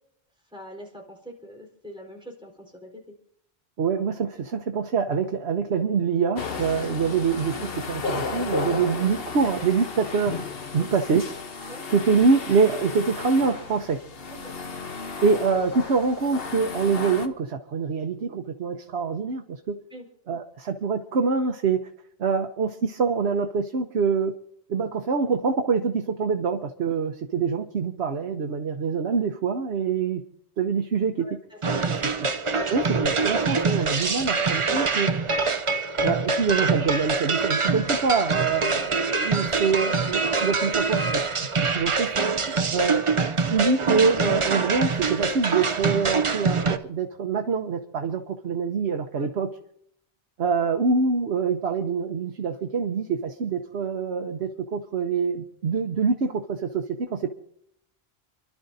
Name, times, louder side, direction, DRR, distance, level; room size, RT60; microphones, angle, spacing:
voice 1, 0.5-3.0 10.8-10.9 11.7-11.8 14.4-14.5 19.9-20.0 31.2-32.1 42.5-42.8 49.2-49.3, equal, 5° right, -2 dB, 4.3 m, -43 dB
voice 2, 3.8-10.4 10.7-11.2 11.5-14.0 15.2-19.8 20.3-21.8 22.2-24.3 24.7-30.2 30.6-31.3 32.7-35.1 36.0-41.2 41.6-42.1 42.7-43.0 43.5-49.5 50.4-57.3, right 5 dB, 90° right, 4 dB, 1.2 m, -25 dB
sound 1, 6.4-17.3, left 4 dB, 65° left, 1.3 m, -34 dB
sound 2, 31.6-46.8, right 4 dB, 35° right, 0.7 m, -25 dB
29.5 x 11.5 x 2.7 m, 0.70 s
omnidirectional pair, 1.1 m